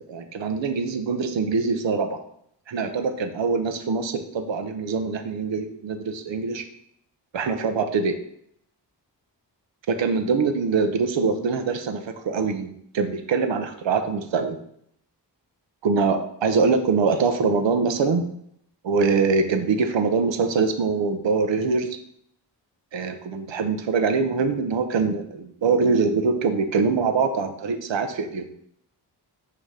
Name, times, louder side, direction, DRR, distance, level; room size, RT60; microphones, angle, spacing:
voice 1, 0.1-2.2 2.7-6.6 7.3-8.2 9.9-14.6 15.8-18.3 18.8-22.0 22.9-28.4, right 4 dB, 80° right, 7 dB, 0.8 m, -23 dB
6.6 x 2.9 x 5.1 m, 0.70 s
cardioid pair, 75°, 44 cm